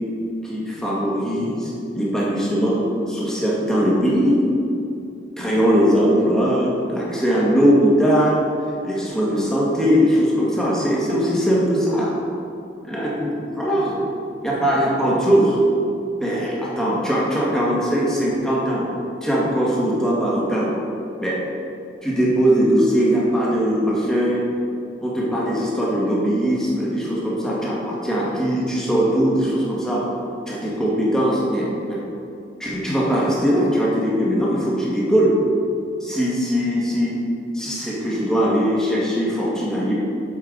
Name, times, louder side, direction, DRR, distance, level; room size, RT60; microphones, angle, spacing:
voice 1, 0.4-2.8 3.1-4.4 5.4-8.4 8.8-12.1 12.9-13.3 13.5-13.9 14.4-15.6 16.2-18.8 19.2-20.7 21.2-21.4 22.0-24.5 25.0-30.0 30.5-32.0 32.6-35.3 36.0-37.1 37.5-39.9, equal, 5° left, -6 dB, 1.7 m, -20 dB
8.4 x 6.9 x 3.9 m, 2.6 s
head